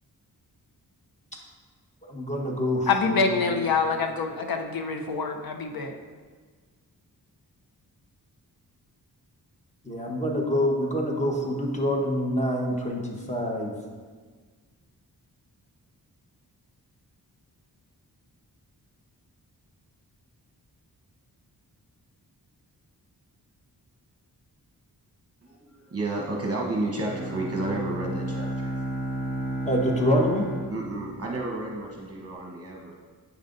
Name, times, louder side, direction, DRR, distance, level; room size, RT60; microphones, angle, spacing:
voice 1, 2.1-3.7 9.8-13.7 29.6-30.4, equal, 20° left, -1 dB, 1.2 m, -26 dB
voice 2, 2.9-6.0, left 4 dB, 65° left, 5 dB, 0.8 m, -26 dB
voice 3, 25.4-28.7 30.7-32.9, right 2 dB, 40° right, -2 dB, 1.0 m, -31 dB
Bowed string instrument, 26.9-31.9, right 1 dB, 90° left, 1.9 m, -33 dB
8.3 x 5.3 x 2.6 m, 1.5 s
cardioid pair, 65°, 38 cm